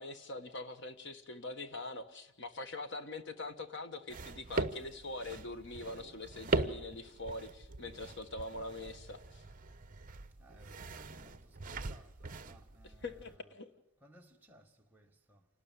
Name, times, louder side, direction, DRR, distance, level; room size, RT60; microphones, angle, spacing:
voice 1, 0.0-9.4 12.8-13.7, left 2 dB, 55° left, 1.4 m, -43 dB
sound 1, 4.1-13.4, right 3 dB, 40° right, 0.9 m, -40 dB
voice 2, 10.4-13.3 14.0-15.5, right 1 dB, 10° right, 1.5 m, -61 dB
28.0 x 12.5 x 9.3 m
head